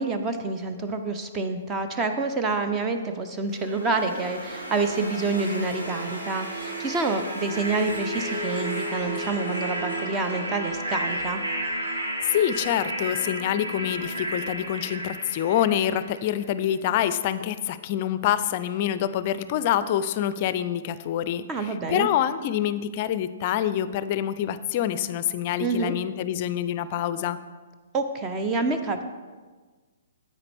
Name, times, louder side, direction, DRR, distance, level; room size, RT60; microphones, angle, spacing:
voice 1, 0.0-11.4 21.5-22.1 25.6-25.9 27.9-29.0, right 3 dB, 20° right, 6 dB, 0.6 m, -27 dB
sound 1, 3.5-16.4, right 1 dB, 75° right, 1.9 m, -32 dB
voice 2, 12.2-27.4, left 10 dB, 40° left, 14 dB, 0.4 m, -26 dB
9.6 x 8.4 x 3.5 m, 1.4 s
figure-of-eight pair, 125°, 0 cm